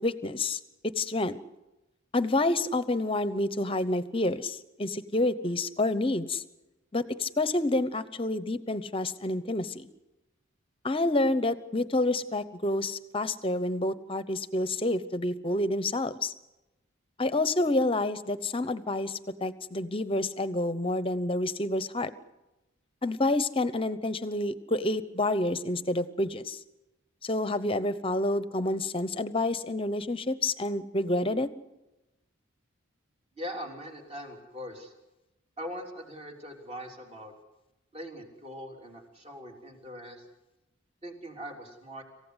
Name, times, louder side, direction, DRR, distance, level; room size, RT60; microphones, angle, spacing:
voice 1, 0.0-1.4 2.1-6.4 6.9-9.9 10.8-16.3 17.2-22.1 23.0-26.6 27.2-31.5, left 2 dB, 25° left, 14 dB, 0.9 m, -28 dB
voice 2, 33.4-34.9 35.6-37.3 37.9-40.2 41.0-42.0, equal, 30° right, 2 dB, 3.4 m, -41 dB
27.0 x 15.5 x 8.1 m, 0.99 s
head